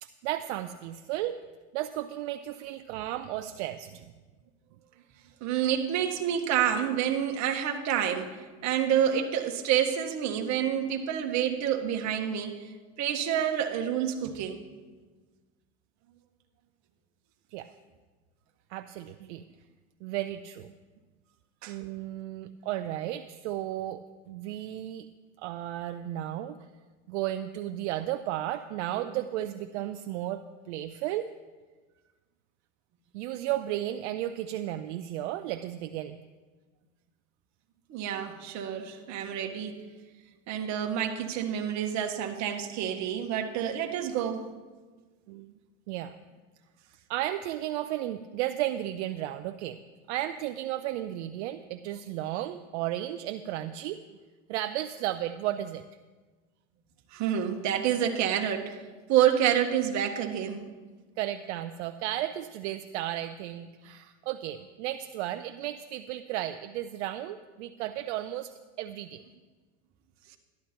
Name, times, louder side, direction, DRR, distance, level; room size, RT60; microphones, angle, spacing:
voice 1, 0.0-1.4 1.7-4.1 17.5-17.7 18.7-19.4 20.0-20.7 21.7-25.1 25.4-26.6 27.1-31.3 33.1-36.2 39.2-39.3 45.3-45.5 45.9-46.2 47.1-49.8 50.1-54.0 54.5-55.8 61.2-69.2, right 13 dB, 65° right, 10 dB, 0.6 m, -34 dB
voice 2, 5.4-8.4 8.6-12.6 13.0-14.6 21.6-21.8 37.9-39.7 40.5-44.5 57.1-58.8 59.1-60.6, right 9 dB, 50° right, 4 dB, 1.6 m, -28 dB
13.0 x 12.0 x 4.4 m, 1.3 s
hypercardioid pair, 100°, 36 cm